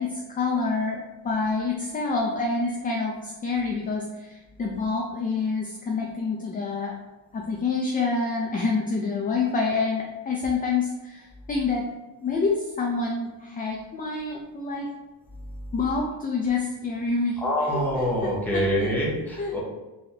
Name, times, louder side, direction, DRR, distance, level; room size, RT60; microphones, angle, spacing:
voice 1, 0.0-6.9 7.3-11.8 12.2-14.9 15.7-18.9 19.4-19.5, left 4 dB, 20° left, -1 dB, 0.3 m, -27 dB
voice 2, 17.4-19.6, equal, 5° left, -5 dB, 0.9 m, -25 dB
3.2 x 2.8 x 3.9 m, 1.1 s
cardioid pair, 150°, 43 cm